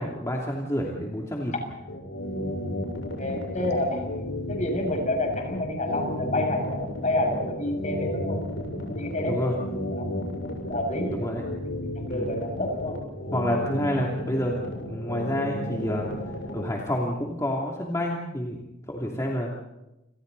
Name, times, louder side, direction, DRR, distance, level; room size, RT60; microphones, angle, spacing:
voice 1, 0.0-1.5 9.2-9.6 11.1-11.4 12.1-12.3 13.3-16.1 16.5-18.6 18.9-19.5, left 1 dB, 15° left, -3 dB, 2.9 m, -29 dB
sound 1, 1.9-16.6, left 1 dB, 85° left, 7.4 m, -33 dB
voice 2, 3.2-8.4 9.0-9.5 9.9-10.1 10.7-11.3 11.9-13.0, left 1 dB, 40° left, 3 dB, 7.0 m, -29 dB
29.5 x 29.0 x 4.1 m, 0.94 s
head